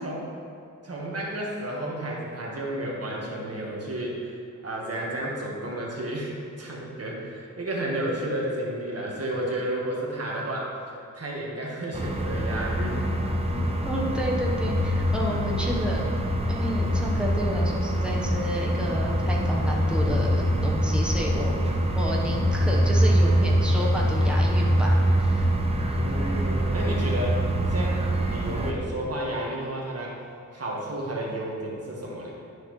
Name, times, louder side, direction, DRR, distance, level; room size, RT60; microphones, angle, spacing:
voice 1, 0.8-4.4 4.6-10.7 11.1-13.0 15.3-15.7 22.7-23.0 25.9-30.2 30.5-32.3, right 1 dB, 45° right, -3 dB, 1.5 m, -32 dB
sound 1, 11.9-28.7, equal, 20° right, 0.6 m, -24 dB
voice 2, 13.5-16.1 16.5-21.5 21.9-25.5, equal, 5° right, -3 dB, 1.0 m, -31 dB
9.8 x 6.3 x 3.1 m, 2.6 s
wide cardioid pair, 145°, 33 cm